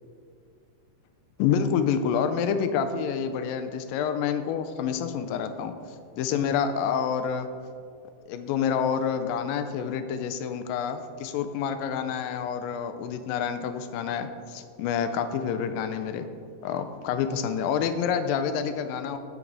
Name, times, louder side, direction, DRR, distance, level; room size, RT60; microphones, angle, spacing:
voice 1, 1.4-5.7 6.2-7.5 8.3-16.3 16.6-19.2, left 7 dB, 85° left, 9 dB, 2.2 m, -28 dB
9.2 x 6.0 x 3.9 m, 2.2 s
omnidirectional pair, 4.1 m